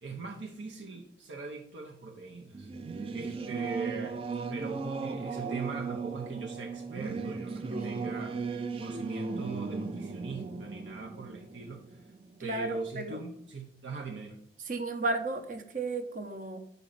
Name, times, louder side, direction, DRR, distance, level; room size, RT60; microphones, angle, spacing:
voice 1, 0.0-2.7 3.1-4.2 4.5-8.4 8.8-12.0 12.4-14.4, right 3 dB, 85° right, 0 dB, 0.7 m, -41 dB
Singing / Musical instrument, 2.5-12.6, right 4 dB, 30° right, 0.3 m, -37 dB
voice 2, 7.7-8.1 12.4-13.2 14.7-16.6, right 3 dB, 45° right, 7 dB, 0.7 m, -34 dB
5.0 x 4.1 x 5.7 m, 0.69 s
head